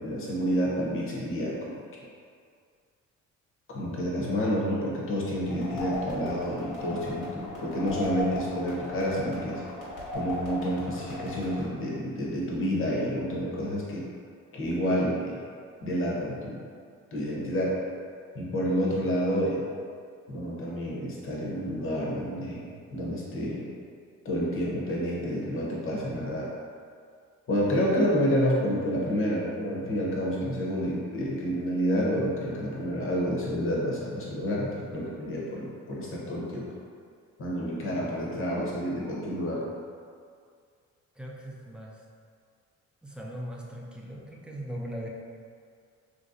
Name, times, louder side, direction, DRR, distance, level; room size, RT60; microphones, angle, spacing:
voice 1, 0.0-1.7 3.7-9.6 10.1-14.0 14.5-15.4 15.8-16.6 17.1-17.7 18.3-19.6 20.3-22.6 22.9-23.7 24.2-26.5 27.5-36.7 37.4-39.6, equal, 45° left, -4 dB, 0.8 m, -29 dB
sound 1, 5.5-11.6, left 2 dB, 80° left, 1.2 m, -37 dB
voice 2, 37.9-38.4 41.2-42.0 43.0-45.1, equal, 5° right, -2 dB, 0.4 m, -40 dB
3.0 x 2.7 x 2.5 m, 2.2 s
cardioid pair, 90°, 30 cm